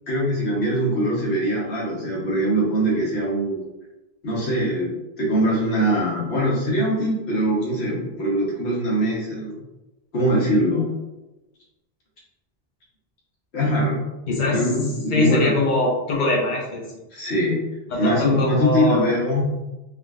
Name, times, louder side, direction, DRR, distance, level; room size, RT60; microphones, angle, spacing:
voice 1, 0.1-3.6 4.2-9.6 10.1-10.9 13.5-14.0 14.5-15.6 17.1-17.6 18.0-19.5, equal, 80° left, -5 dB, 1.2 m, -22 dB
voice 2, 15.1-16.8 17.9-19.1, left 2 dB, 50° left, -2 dB, 0.9 m, -22 dB
3.5 x 2.5 x 2.3 m, 1.0 s
omnidirectional pair, 1.1 m